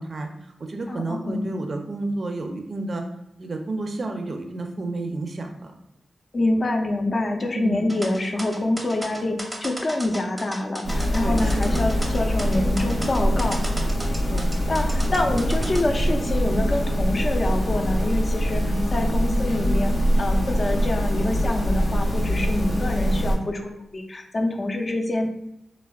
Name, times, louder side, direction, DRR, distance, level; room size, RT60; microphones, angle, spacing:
voice 1, 0.0-3.0 3.4-5.7 7.5-7.9 11.2-11.8 14.3-14.5, right 2 dB, 50° right, 4 dB, 0.4 m, -31 dB
voice 2, 0.9-1.4 6.3-13.6 14.7-18.6 18.9-19.9 20.2-25.3, left 2 dB, 40° left, 4 dB, 0.4 m, -26 dB
sound 1, 7.9-15.8, right 1 dB, 10° right, 0.6 m, -35 dB
sound 2, 10.8-23.3, equal, 65° left, 0.9 m, -23 dB
3.4 x 2.0 x 2.3 m, 0.84 s
cardioid pair, 65°, 0 cm